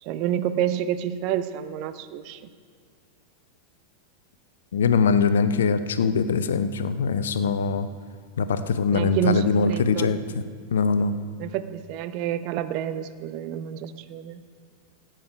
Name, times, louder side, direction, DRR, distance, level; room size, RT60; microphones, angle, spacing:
voice 1, 0.0-2.5 8.9-10.1 11.4-14.4, right 10 dB, 45° right, 12 dB, 0.7 m, -28 dB
voice 2, 4.7-7.9 8.4-10.2 10.7-11.2, left 5 dB, 65° left, 12 dB, 0.7 m, -22 dB
17.0 x 9.1 x 4.9 m, 2.1 s
figure-of-eight pair, 90°, 0 cm